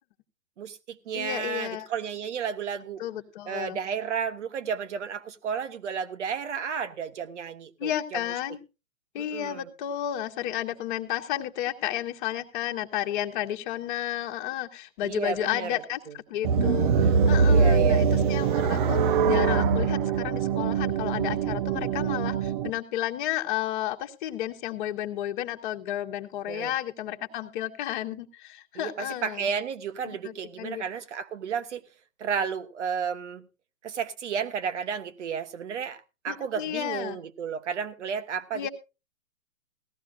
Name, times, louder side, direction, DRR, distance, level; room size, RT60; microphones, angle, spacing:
voice 1, 0.6-3.0 3.4-8.2 9.2-9.7 15.0-16.1 17.4-18.1 26.5-26.7 28.7-31.9 32.2-33.5 33.8-38.7, right 7 dB, 60° right, 1.3 m, -32 dB
voice 2, 1.1-1.9 3.0-3.8 7.8-8.6 9.1-29.5 30.0-30.8 36.3-37.2 38.5-38.7, left 12 dB, 35° left, 1.4 m, -32 dB
sound 1, 16.4-22.7, right 5 dB, 35° right, 0.8 m, -23 dB
17.5 x 14.0 x 2.5 m
hypercardioid pair, 130°, 41 cm